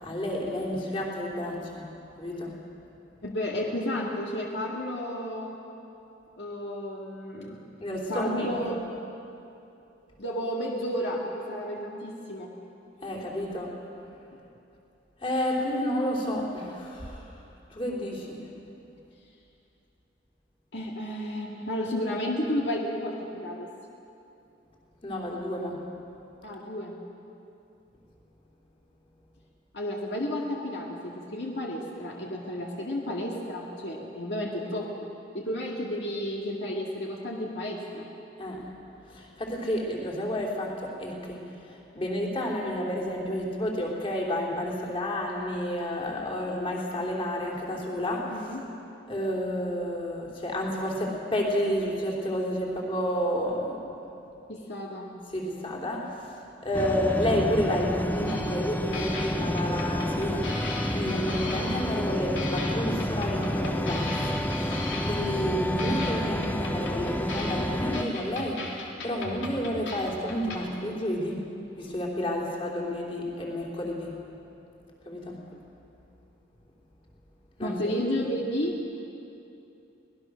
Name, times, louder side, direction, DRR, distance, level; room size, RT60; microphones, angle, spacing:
voice 1, 0.0-1.9 2.2-2.6 7.8-8.8 13.0-13.7 15.2-17.2 17.7-18.5 25.0-25.8 38.4-38.6 39.1-41.4 41.7-48.3 49.1-53.8 55.3-56.3 56.6-60.5 60.9-64.2 64.5-71.5 71.8-74.2 75.0-75.4 77.6-77.8, equal, 30° left, -2 dB, 3.5 m, -30 dB
voice 2, 3.2-5.6 6.4-7.6 8.1-8.8 10.2-12.5 20.7-23.7 26.4-27.0 29.7-34.9 35.3-38.1 48.3-48.6 54.5-55.2 77.6-78.8, left 1 dB, 65° left, -2 dB, 2.1 m, -32 dB
sound 1, 56.7-68.0, left 1 dB, 10° left, 0.6 m, -30 dB
sound 2, 58.3-58.7 58.9-62.1 62.4-65.5 65.8-70.6, left 2 dB, 85° left, 3.2 m, -38 dB
24.5 x 19.0 x 6.4 m, 2.8 s
head